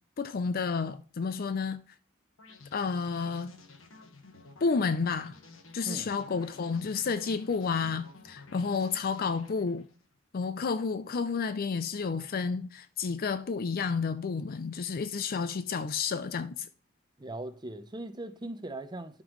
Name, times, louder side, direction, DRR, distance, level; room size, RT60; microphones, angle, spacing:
voice 1, 0.2-1.8 2.7-3.5 4.6-5.4 5.7-9.9 10.3-16.7, left 5 dB, 45° left, 0.4 m, -31 dB
sound 1, 2.4-10.1, left 3 dB, 75° left, 1.4 m, -52 dB
voice 2, 17.2-19.2, right 2 dB, 20° right, 0.7 m, -39 dB
12.5 x 5.3 x 3.1 m
head